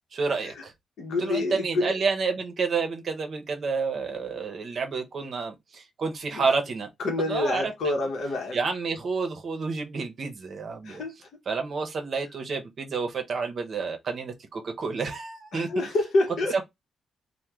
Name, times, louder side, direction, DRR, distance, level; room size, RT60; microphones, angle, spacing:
voice 1, 0.1-0.7 1.2-6.9 7.3-7.7 8.5-11.0 11.5-15.7 16.5-16.6, right 4 dB, 50° right, 0.7 m, -29 dB
voice 2, 1.0-1.9 5.2-5.3 6.3-6.5 7.0-8.6 10.8-11.3 15.5-16.6, left 2 dB, 80° left, 0.8 m, -28 dB
2.9 x 2.1 x 3.5 m
cardioid pair, 125°, 0 cm